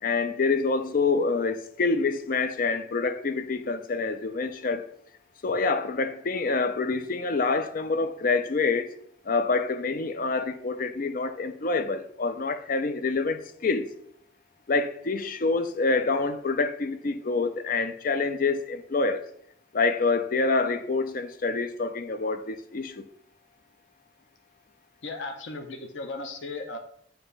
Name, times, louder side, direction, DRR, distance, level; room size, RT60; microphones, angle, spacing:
voice 1, 0.0-4.8 5.4-8.9 9.3-13.9 14.7-19.3 19.7-23.0, left 4 dB, 50° left, 0.5 m, -26 dB
voice 2, 25.0-26.8, left 3 dB, 85° left, 0.8 m, -36 dB
7.7 x 2.9 x 5.5 m
head